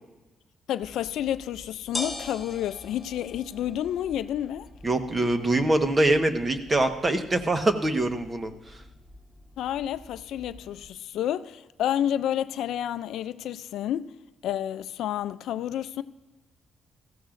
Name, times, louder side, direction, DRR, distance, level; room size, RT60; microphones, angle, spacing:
voice 1, 0.7-4.7 9.6-14.1 14.4-16.0, left 11 dB, 80° left, 0.4 m, -30 dB
sound 1, 0.8-10.9, left 2 dB, 5° left, 3.9 m, -43 dB
voice 2, 4.8-8.5, right 2 dB, 25° right, 1.3 m, -24 dB
18.0 x 14.5 x 2.6 m
cardioid pair, 90°, 0 cm